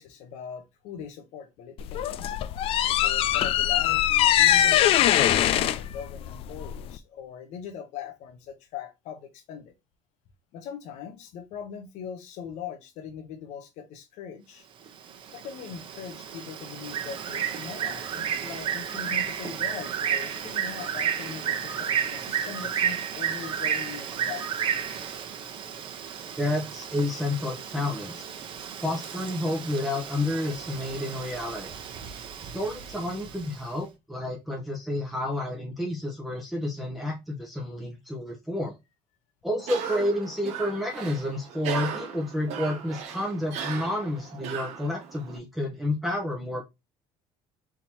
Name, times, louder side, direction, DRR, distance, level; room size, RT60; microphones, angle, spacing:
voice 1, 0.0-2.3 2.8-9.7 10.5-14.6 15.3-24.4, left 8 dB, 65° left, 1.0 m, -41 dB
sound 1, 1.8-7.0, left 12 dB, 50° left, 0.4 m, -22 dB
Bird, 14.9-33.6, right 8 dB, 40° right, 0.8 m, -32 dB
voice 2, 26.4-28.3 28.8-31.7 32.4-38.7 39.4-46.6, left 1 dB, ahead, 0.9 m, -30 dB
Cough, 39.6-45.4, right 7 dB, 60° right, 1.1 m, -37 dB
3.7 x 2.9 x 4.3 m
cardioid pair, 130°, 13 cm